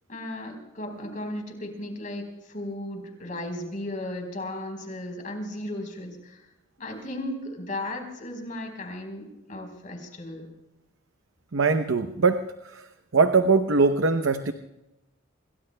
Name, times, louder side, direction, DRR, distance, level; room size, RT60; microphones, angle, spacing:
voice 1, 0.1-6.4 6.8-10.5, left 1 dB, 40° left, 4 dB, 4.2 m, -35 dB
voice 2, 11.5-12.9 13.1-14.5, right 4 dB, 75° right, 9 dB, 0.7 m, -22 dB
28.0 x 22.5 x 2.2 m, 0.94 s
head